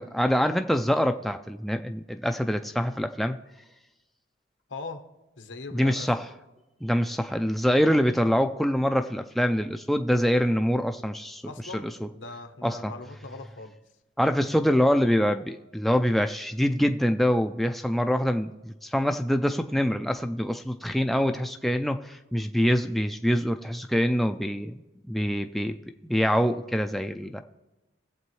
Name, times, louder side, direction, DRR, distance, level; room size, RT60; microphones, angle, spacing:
voice 1, 0.0-3.4 5.7-6.2 6.8-11.4 11.7-12.1 12.6-12.9 14.2-24.7 25.1-25.7 26.1-27.4, equal, ahead, 6 dB, 0.3 m, -25 dB
voice 2, 4.7-5.1 5.4-6.1 11.4-13.7, left 3 dB, 85° left, 7 dB, 1.0 m, -40 dB
20.5 x 7.7 x 3.2 m, 1.1 s
head